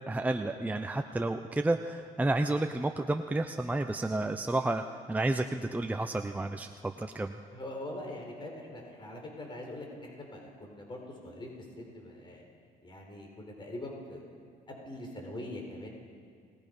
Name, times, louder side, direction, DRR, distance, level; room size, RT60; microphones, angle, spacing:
voice 1, 0.0-4.8 5.1-7.3, right 2 dB, 10° right, 6 dB, 0.7 m, -31 dB
voice 2, 7.5-11.5 11.8-12.4 12.8-14.3 14.7-15.9, left 1 dB, 30° left, 1 dB, 4.5 m, -43 dB
29.5 x 19.0 x 5.4 m, 2.2 s
cardioid pair, 110°, 17 cm